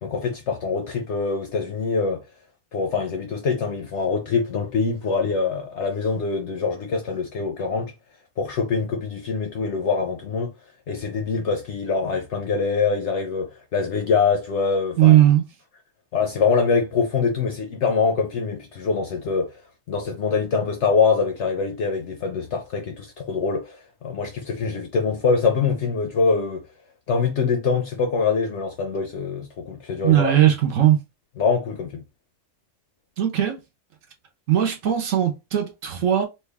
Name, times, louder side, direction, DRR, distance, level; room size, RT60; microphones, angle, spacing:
voice 1, 0.0-2.2 2.7-7.9 8.4-10.5 10.9-15.2 16.1-19.5 19.9-26.6 27.1-30.3 31.4-32.0, left 5 dB, 65° left, 0.7 m, -24 dB
voice 2, 15.0-15.5 30.0-31.0 33.2-33.6 34.5-36.2, right 12 dB, 65° right, 1.0 m, -18 dB
3.2 x 2.2 x 3.4 m
omnidirectional pair, 1.6 m